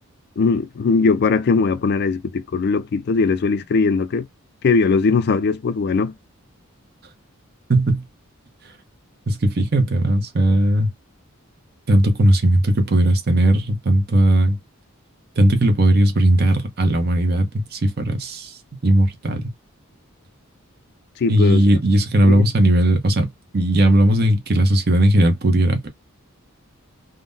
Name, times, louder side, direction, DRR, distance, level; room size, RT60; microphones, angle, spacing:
voice 1, 0.4-4.3 4.6-6.1 21.2-21.6 22.2-22.5, left 4 dB, 50° left, 0.3 m, -19 dB
voice 2, 7.7-8.0 9.3-10.9 11.9-14.6 15.4-18.6 18.8-19.4 21.3-23.3 23.5-25.9, right 1 dB, 50° right, 0.7 m, -17 dB
3.6 x 2.0 x 2.6 m
head